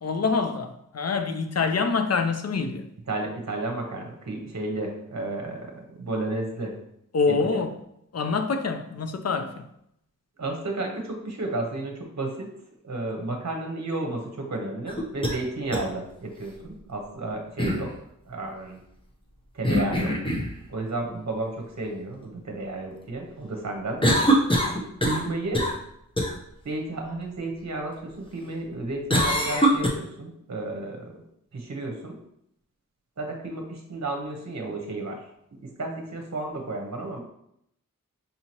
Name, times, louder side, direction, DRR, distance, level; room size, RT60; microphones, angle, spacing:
voice 1, 0.0-2.9 7.1-7.8 8.1-9.7, left 4 dB, 50° left, 0.5 m, -26 dB
voice 2, 3.1-6.8 7.3-7.6 10.4-12.5 12.8-17.9 18.3-18.8 19.5-20.1 20.7-24.0 25.0-25.7 26.6-31.2 31.5-32.2 33.2-35.2 35.6-37.2, right 2 dB, 55° right, 0.9 m, -32 dB
sound 1, 14.9-15.4 15.7-15.8 17.6-17.9 19.6-20.5 24.0-25.3 25.5-25.8 26.2-26.3 29.1-29.9, equal, 15° left, 0.8 m, -22 dB
5.5 x 2.8 x 2.9 m
wide cardioid pair, 55°, 33 cm